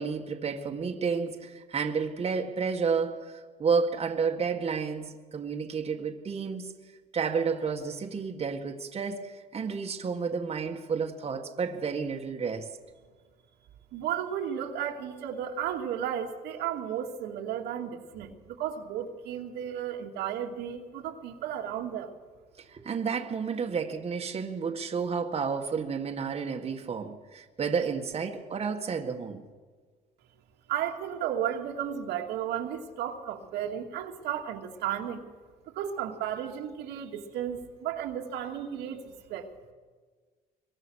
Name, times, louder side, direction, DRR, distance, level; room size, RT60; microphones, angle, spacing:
voice 1, 0.0-6.7 7.1-12.7 22.7-29.4, right 5 dB, 35° right, 1.9 m, -31 dB
voice 2, 13.9-22.2 30.7-35.2 35.7-39.5, right 9 dB, 85° right, 2.5 m, -34 dB
25.5 x 23.0 x 6.5 m
cardioid pair, 110°, 17 cm